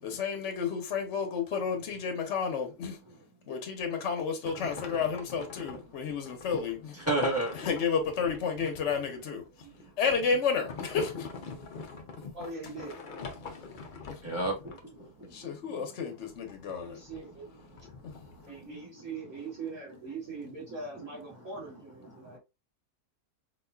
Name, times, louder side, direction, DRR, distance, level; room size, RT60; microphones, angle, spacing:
voice 1, 0.0-3.0 3.5-7.0 7.5-9.4 10.0-11.3 14.1-14.2 15.3-17.0 18.0-18.3, left 6 dB, 55° left, 0.8 m, -31 dB
sound 1, 4.4-15.4 16.3-18.6, left 4 dB, 75° left, 0.4 m, -43 dB
voice 2, 7.1-7.5 14.2-14.6 14.9-15.4 18.6-18.8 22.2-22.4, right 2 dB, 10° right, 0.9 m, -30 dB
voice 3, 12.3-13.0 16.7-17.5 17.8-17.9 18.4-22.4, right 3 dB, 55° right, 1.6 m, -42 dB
4.0 x 2.5 x 2.3 m
omnidirectional pair, 1.7 m